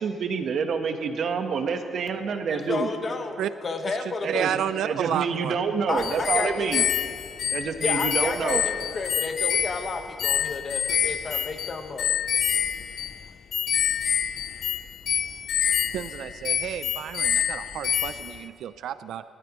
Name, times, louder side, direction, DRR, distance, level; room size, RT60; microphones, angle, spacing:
voice 1, 0.0-2.9 4.2-4.5 4.8-6.9 7.5-8.6, right 5 dB, 65° right, 6 dB, 1.0 m, -27 dB
voice 2, 2.5-3.4 3.6-4.5 5.9-6.9 7.8-12.1, left 4 dB, 40° left, 5 dB, 1.2 m, -31 dB
voice 3, 4.3-5.6 15.9-19.2, right 10 dB, 80° right, 13 dB, 0.4 m, -31 dB
sound 1, 6.0-18.4, left 8 dB, 60° left, 0.5 m, -27 dB
19.0 x 13.5 x 3.0 m, 2.4 s
cardioid pair, 105°, 0 cm